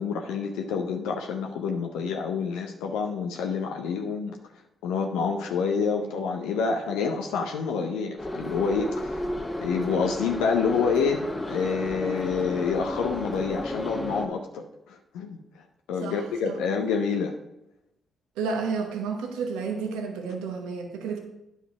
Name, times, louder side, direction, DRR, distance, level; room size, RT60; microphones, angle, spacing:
voice 1, 0.0-4.4 4.8-9.2 9.6-15.4 15.9-17.4, left 5 dB, 80° left, 2 dB, 0.7 m, -28 dB
Subway metro underground, 8.2-14.3, left 1 dB, 25° left, 1.8 m, -32 dB
voice 2, 16.0-16.6 18.4-21.2, right 5 dB, 80° right, 3 dB, 0.9 m, -31 dB
9.7 x 5.4 x 4.8 m, 0.88 s
hypercardioid pair, 45°, 0 cm